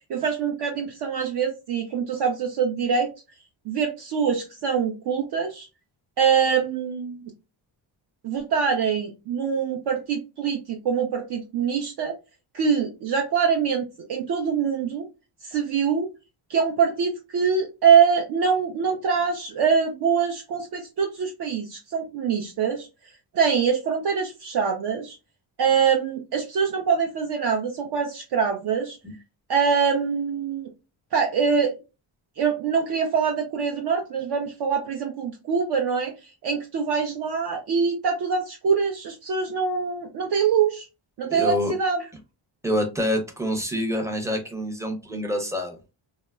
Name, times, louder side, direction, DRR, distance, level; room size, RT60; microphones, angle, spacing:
voice 1, 0.1-3.1 3.7-5.7 6.2-7.2 8.2-12.2 12.5-15.1 15.4-16.1 16.5-22.9 23.3-25.2 25.6-29.0 29.5-30.7 31.1-31.7 32.4-40.9 41.2-42.1, right 6 dB, 55° right, 2 dB, 0.5 m, -24 dB
voice 2, 41.3-41.7 42.6-45.9, equal, 5° right, 3 dB, 0.5 m, -27 dB
2.8 x 2.1 x 2.2 m, 0.28 s
cardioid pair, 130°, 48 cm